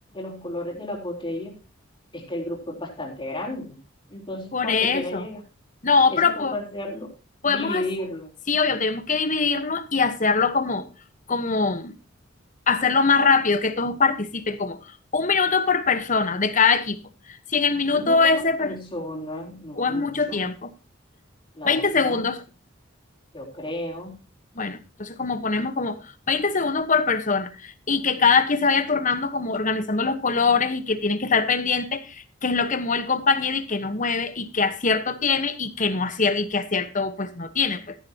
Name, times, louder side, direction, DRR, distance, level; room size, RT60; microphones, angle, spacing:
voice 1, 0.1-1.6 2.1-3.8 4.1-5.4 6.1-7.1 7.5-8.3 17.9-18.2 18.6-20.5 21.5-22.3 23.3-24.2, left 1 dB, 25° left, 3.7 m, -33 dB
voice 2, 4.5-5.2 5.8-6.6 7.4-7.8 8.5-10.9 11.3-11.9 12.7-14.8 15.1-17.0 17.5-18.7 19.8-20.7 21.6-22.4 24.6-26.0 26.3-37.9, left 4 dB, 40° left, 1.2 m, -23 dB
13.5 x 11.0 x 2.9 m
head